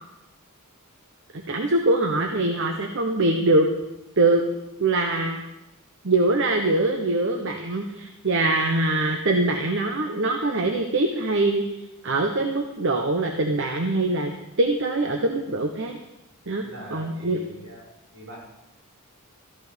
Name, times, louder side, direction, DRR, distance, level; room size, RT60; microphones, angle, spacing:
voice 1, 1.3-3.7 4.2-4.4 4.8-5.4 6.0-11.6 12.0-14.3 14.6-16.0 16.5-17.4, right 2 dB, 60° right, 3 dB, 1.1 m, -23 dB
voice 2, 16.6-18.4, right 1 dB, 80° right, -4 dB, 5.9 m, -42 dB
14.5 x 11.0 x 5.2 m, 0.93 s
head